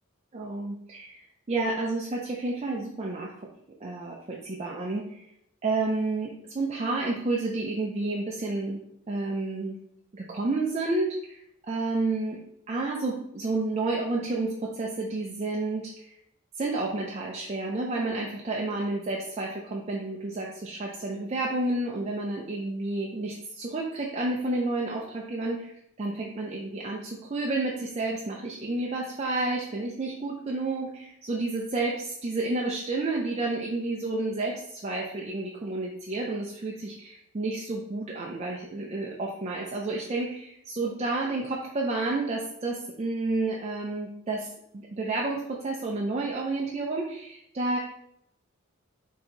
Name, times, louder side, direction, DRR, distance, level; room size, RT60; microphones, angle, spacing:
voice 1, 0.3-1.2 1.5-3.3 3.8-5.2 5.6-8.8 9.1-9.8 10.1-11.4 11.7-12.4 12.7-16.1 16.5-44.5 44.7-47.8, right 2 dB, 30° right, -2 dB, 0.4 m, -30 dB
4.3 x 2.8 x 3.8 m, 0.76 s
head